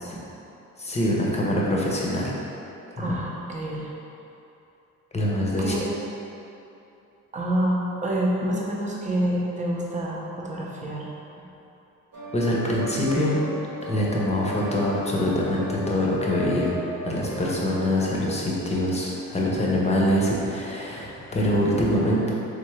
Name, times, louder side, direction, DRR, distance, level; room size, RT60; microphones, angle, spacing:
voice 1, 0.8-2.3 3.0-3.1 5.1-5.7 12.3-13.4 13.9-16.7 17.0-22.3, left 1 dB, 20° left, -4 dB, 0.8 m, -24 dB
voice 2, 3.0-3.9 5.6-5.9 7.3-11.1, right 1 dB, 25° right, -4 dB, 0.8 m, -27 dB
sound 1, 12.1-19.7, right 1 dB, 60° right, 1.1 m, -37 dB
3.6 x 3.6 x 3.3 m, 2.9 s
cardioid pair, 90°, 30 cm